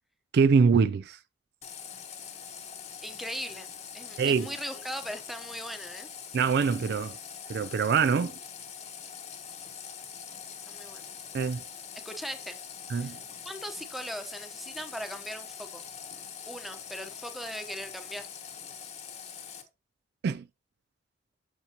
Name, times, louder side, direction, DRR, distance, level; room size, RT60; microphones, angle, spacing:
voice 1, 0.3-1.2 4.2-4.5 6.3-7.2 7.5-8.3 11.3-11.6 12.9-13.2 20.2-20.4, right 5 dB, 60° right, 0.3 m, -24 dB
Water tap faucet, 1.6-19.6, left 7 dB, 35° left, 1.1 m, -43 dB
voice 2, 3.0-3.7 3.9-6.1 10.7-11.0 12.0-12.6 12.9-13.2 13.4-15.8 16.5-18.3, equal, ahead, 0.9 m, -39 dB
8.3 x 7.1 x 2.9 m
head